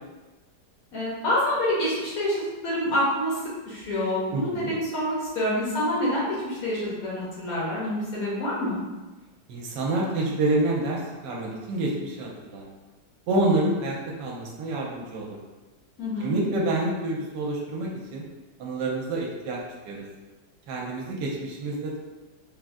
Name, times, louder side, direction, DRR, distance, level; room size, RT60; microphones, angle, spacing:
voice 1, 0.9-3.4 3.7-8.8 16.0-16.3, left 1 dB, 60° left, -7 dB, 1.1 m, -27 dB
voice 2, 4.3-4.7 9.5-12.7 13.3-15.4 16.2-18.2 18.6-20.0 20.7-22.0, right 2 dB, 75° right, -2 dB, 1.2 m, -28 dB
3.5 x 2.4 x 2.5 m, 1.2 s
omnidirectional pair, 2.0 m